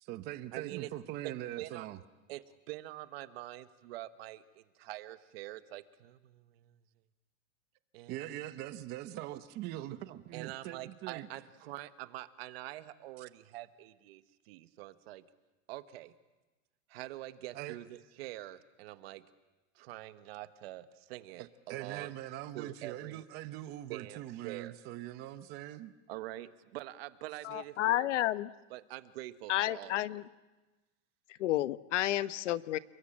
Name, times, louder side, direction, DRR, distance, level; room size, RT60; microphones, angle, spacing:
voice 1, 0.0-2.0 8.1-11.3 17.5-17.8 21.4-25.9, right 14 dB, 25° right, 13 dB, 0.8 m, -42 dB
voice 2, 0.5-0.9 1.2-1.9 2.3-6.8 7.9-8.4 10.3-15.2 15.7-16.1 16.9-19.2 19.7-22.1 22.5-23.2 23.9-24.8 26.1-28.1 28.7-30.2, right 16 dB, 50° right, 12 dB, 1.4 m, -45 dB
voice 3, 27.4-28.5 29.5-30.2 31.4-32.8, left 14 dB, 65° left, 15 dB, 1.1 m, -31 dB
29.5 x 21.5 x 8.8 m, 1.1 s
supercardioid pair, 170°, 39 cm